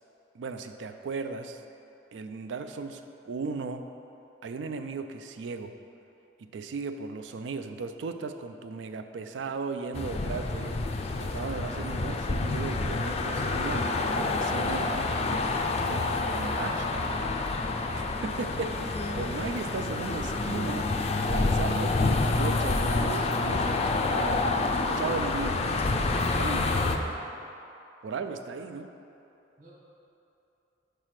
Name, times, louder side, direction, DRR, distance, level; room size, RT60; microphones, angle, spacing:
voice 1, 0.3-1.6 2.1-3.9 4.4-5.7 6.4-10.8 11.2-15.1 15.9-16.0 16.2-17.2 17.9-20.9 21.3-27.2 28.0-28.9, right 4 dB, 85° right, 8 dB, 0.4 m, -36 dB
sound 1, 9.9-27.0, left 3 dB, 35° left, 0.4 m, -28 dB
voice 2, 15.4-16.6 29.6-29.7, right 2 dB, 45° right, -6 dB, 1.5 m, -48 dB
4.8 x 4.8 x 5.8 m, 2.8 s
head